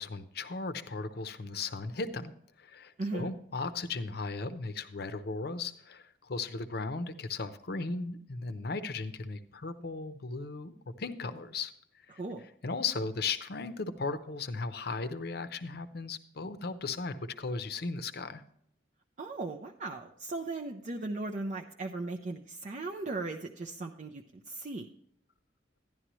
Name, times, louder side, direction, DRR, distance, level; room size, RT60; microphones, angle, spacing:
voice 1, 0.0-2.3 2.6-11.7 12.1-12.2 12.6-18.4, left 4 dB, 55° left, 11 dB, 0.7 m, -36 dB
voice 2, 3.0-3.3 12.1-12.5 19.2-24.9, right 2 dB, 40° right, 2 dB, 0.5 m, -37 dB
11.5 x 11.0 x 3.1 m, 0.69 s
head